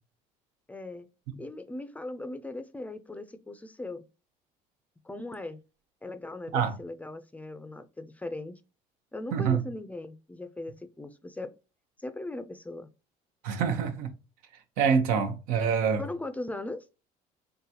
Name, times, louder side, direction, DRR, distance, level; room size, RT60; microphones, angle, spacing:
voice 1, 0.7-1.1 1.4-4.0 5.0-5.6 6.0-8.6 9.1-11.5 12.0-12.9 16.0-16.9, left 2 dB, 10° left, 0.4 m, -39 dB
voice 2, 9.3-9.6 13.4-14.1 14.8-16.0, right 6 dB, 90° right, 0.9 m, -25 dB
3.8 x 3.5 x 2.8 m
cardioid pair, 125°, 15 cm